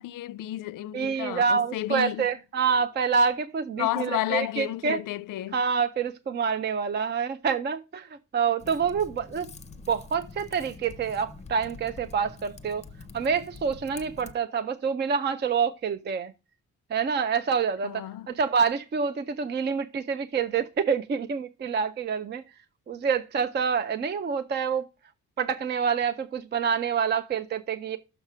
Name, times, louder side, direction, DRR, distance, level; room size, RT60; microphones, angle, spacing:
voice 1, 0.0-2.3 3.8-5.6 17.8-18.4, left 15 dB, 90° left, 0.5 m, -32 dB
voice 2, 0.9-5.0 5.5-9.5 9.9-12.8 13.1-16.3 16.9-22.4 22.9-24.9 25.4-28.0, right 6 dB, 35° right, 0.4 m, -27 dB
Typing, 8.6-14.3, left 4 dB, 20° left, 0.6 m, -46 dB
6.5 x 5.8 x 4.9 m
wide cardioid pair, 170°, 31 cm